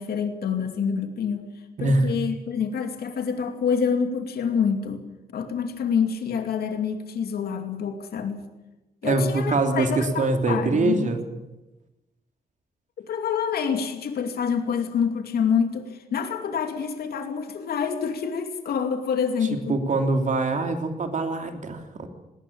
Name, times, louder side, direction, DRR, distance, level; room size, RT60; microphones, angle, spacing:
voice 1, 0.0-1.4 1.8-5.0 5.3-8.4 9.0-11.1 13.0-19.8, left 6 dB, 80° left, 6 dB, 2.7 m, -27 dB
voice 2, 1.8-2.1 9.0-11.2 19.7-22.1, right 3 dB, 50° right, 5 dB, 3.2 m, -24 dB
20.0 x 18.0 x 8.8 m, 1.0 s
cardioid pair, 100°, 16 cm